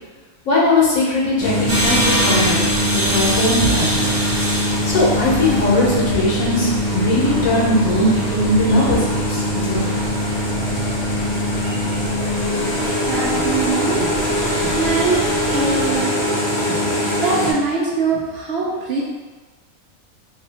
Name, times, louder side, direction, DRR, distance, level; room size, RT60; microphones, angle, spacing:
voice 1, 0.4-4.2 4.9-9.9, left 1 dB, 70° left, -5 dB, 1.2 m, -19 dB
sound 1, 1.4-17.5, equal, 55° left, 0.4 m, -22 dB
sound 2, 1.7-16.0, right 1 dB, 50° right, 1.0 m, -27 dB
voice 2, 13.0-16.1 16.7-16.8 17.2-19.0, right 3 dB, 65° right, -4 dB, 0.6 m, -23 dB
2.7 x 2.3 x 2.7 m, 1.4 s
omnidirectional pair, 1.5 m